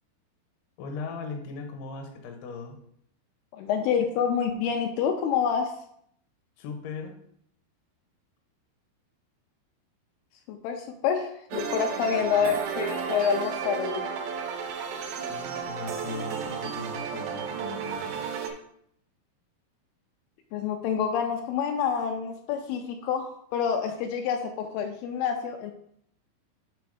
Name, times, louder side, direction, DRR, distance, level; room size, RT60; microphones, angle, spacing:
voice 1, 0.8-2.8 6.6-7.1 12.2-12.5 15.3-18.2, left 4 dB, 70° left, 4 dB, 2.1 m, -39 dB
voice 2, 3.5-5.7 10.5-14.1 20.5-25.7, left 7 dB, 90° left, 4 dB, 2.2 m, -27 dB
sound 1, 11.5-18.5, right 6 dB, 85° right, 2.9 m, -33 dB
6.9 x 4.3 x 4.8 m, 0.69 s
omnidirectional pair, 5.0 m